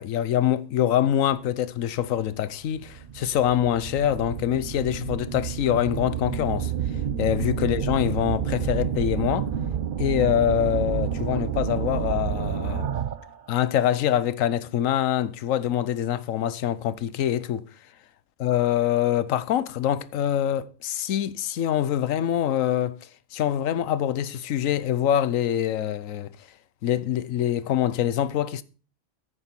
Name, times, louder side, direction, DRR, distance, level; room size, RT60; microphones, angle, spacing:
voice 1, 0.0-6.7 7.2-9.5 10.0-12.9 13.5-17.7 18.4-23.0 23.3-26.3 26.8-28.6, left 11 dB, 80° left, 1.1 m, -25 dB
sound 1, 2.0-2.1 2.7-13.4, right 8 dB, 50° right, 0.8 m, -29 dB
10.0 x 9.0 x 4.5 m
omnidirectional pair, 1.4 m